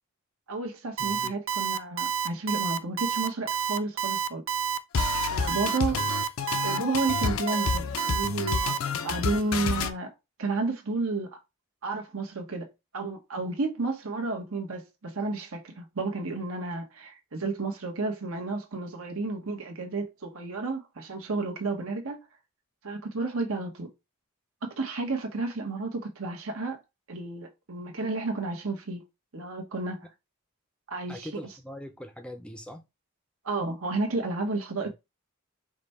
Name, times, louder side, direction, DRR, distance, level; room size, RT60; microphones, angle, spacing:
voice 1, 0.5-4.4 5.3-6.0 6.6-10.1 10.4-11.3 11.8-12.7 12.9-22.2 22.8-23.9 24.6-26.8 27.1-29.0 29.3-30.0 30.9-31.3 33.4-34.9, right 3 dB, 85° right, 1.2 m, -32 dB
voice 2, 1.0-1.3 5.9-6.1 31.1-32.8, left 1 dB, 5° left, 0.5 m, -42 dB
Alarm, 1.0-8.8, right 10 dB, 65° right, 0.4 m, -29 dB
sound 1, 4.9-9.9, left 5 dB, 80° left, 0.5 m, -30 dB
5.1 x 2.2 x 4.2 m
head